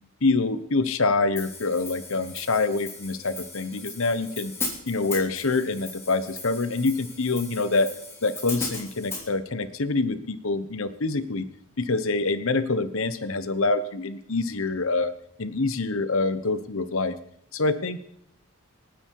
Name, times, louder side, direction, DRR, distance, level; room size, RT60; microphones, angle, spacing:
voice 1, 0.2-4.5 4.9-7.9 8.2-11.5 11.8-15.1 15.4-17.1 17.5-18.0, left 3 dB, 65° left, 12 dB, 1.1 m, -26 dB
Hi-hat, 1.4-9.3, left 3 dB, 10° left, 3.2 m, -37 dB
25.5 x 9.6 x 4.8 m, 0.70 s
head